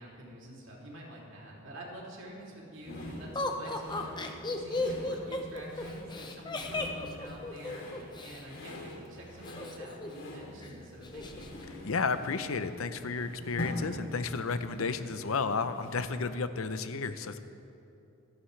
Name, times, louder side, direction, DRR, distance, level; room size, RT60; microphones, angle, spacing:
voice 1, 0.0-11.5, equal, 60° right, -4 dB, 3.0 m, -47 dB
sound 1, 2.8-16.3, left 1 dB, 60° left, 3.1 m, -44 dB
Laughter, 3.4-8.4 9.5-10.3 10.6-10.7 11.0-11.5, left 2 dB, 20° left, 0.8 m, -35 dB
voice 2, 11.8-17.4, left 4 dB, 75° left, 11 dB, 0.7 m, -32 dB
26.5 x 11.5 x 3.3 m, 2.7 s
head